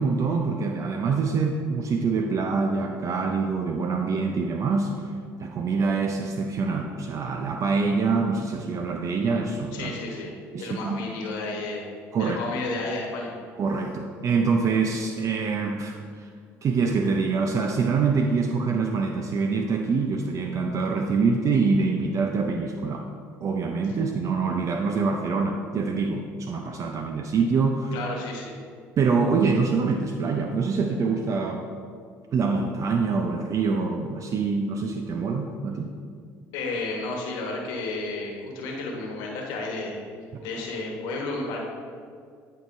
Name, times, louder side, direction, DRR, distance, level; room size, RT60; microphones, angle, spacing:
voice 1, 0.0-4.9 5.4-9.9 10.5-11.0 12.1-12.4 13.6-16.3 16.6-23.1 23.4-28.0 29.0-31.6 32.3-35.9 40.3-40.5, right 4 dB, 45° right, 4 dB, 0.5 m, -25 dB
voice 2, 9.7-10.3 10.6-11.9 12.2-13.3 27.9-28.6 36.5-40.0 40.4-41.6, left 3 dB, 75° left, -1 dB, 1.2 m, -32 dB
11.5 x 4.7 x 2.6 m, 2.2 s
hypercardioid pair, 70°, 7 cm